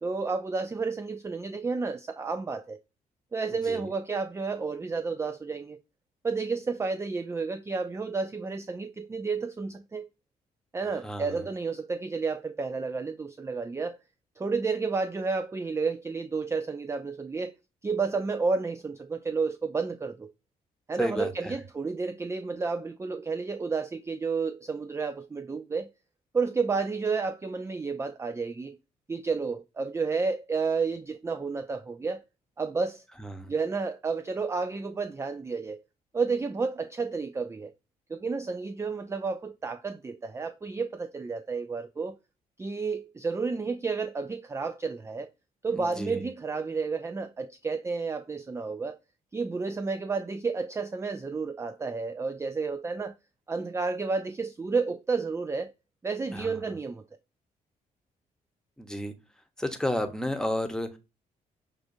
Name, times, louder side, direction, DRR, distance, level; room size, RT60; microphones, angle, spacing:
voice 1, 0.0-2.8 3.3-5.8 6.2-10.1 10.7-14.0 14.4-17.6 17.8-20.3 20.9-25.9 26.3-28.8 29.1-32.2 32.6-33.0 33.5-35.8 36.1-37.7 38.1-42.2 42.6-45.3 45.6-49.0 49.3-53.1 53.5-55.7 56.0-57.0, right 4 dB, 15° right, 0.3 m, -31 dB
voice 2, 3.5-3.9 11.0-11.5 21.0-21.5 33.2-33.5 45.7-46.2 56.3-56.6 58.8-59.1 59.6-61.0, left 1 dB, 5° left, 1.0 m, -32 dB
6.3 x 2.4 x 2.6 m
supercardioid pair, 55°, 17 cm